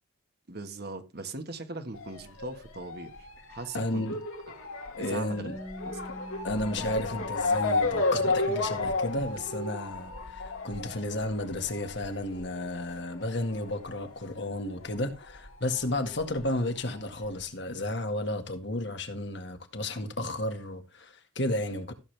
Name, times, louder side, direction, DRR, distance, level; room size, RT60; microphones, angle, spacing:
voice 1, 0.5-3.2 3.5-4.0 5.0-5.4 5.9-6.0, right 3 dB, 50° right, 1.6 m, -39 dB
Motor vehicle (road) / Siren, 2.0-15.0 15.2-16.4 17.1-17.2 17.4-17.5, left 3 dB, 90° left, 3.0 m, -33 dB
voice 2, 3.5-4.2 5.0-5.5 6.4-21.9, left 1 dB, 55° left, 2.0 m, -33 dB
Bass guitar, 5.5-11.7, left 1 dB, 5° right, 5.3 m, -49 dB
15.0 x 7.5 x 3.4 m
head